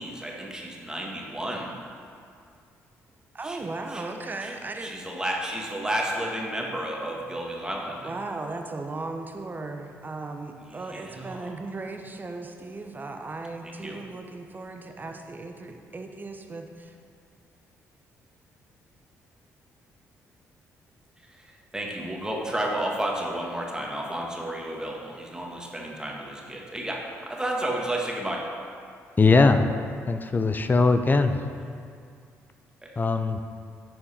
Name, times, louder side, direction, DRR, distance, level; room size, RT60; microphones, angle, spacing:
voice 1, 0.0-1.7 3.4-3.6 3.9-4.0 4.4-4.5 4.8-8.1 10.9-11.5 13.6-14.0 21.7-28.4 32.8-32.9, right 1 dB, 10° right, -2 dB, 1.6 m, -32 dB
voice 2, 3.3-4.9 8.0-16.9, right 3 dB, 30° right, 4 dB, 0.9 m, -37 dB
voice 3, 29.2-29.7 30.1-31.4 33.0-33.4, left 3 dB, 30° left, 8 dB, 0.6 m, -20 dB
10.5 x 4.5 x 4.3 m, 2.3 s
supercardioid pair, 55°, 6 cm